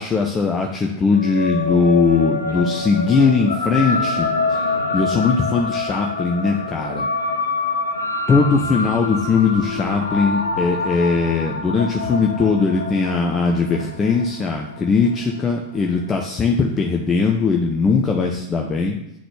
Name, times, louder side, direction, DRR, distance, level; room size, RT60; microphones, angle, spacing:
voice 1, 0.0-7.1 8.3-19.0, left 4 dB, 20° left, 1 dB, 0.5 m, -20 dB
sound 1, 0.6-17.0, right 1 dB, 85° right, 0.7 m, -39 dB
sound 2, 1.1-15.8, left 3 dB, 70° left, 0.5 m, -26 dB
8.4 x 3.9 x 3.2 m, 0.86 s
figure-of-eight pair, 90°, 0 cm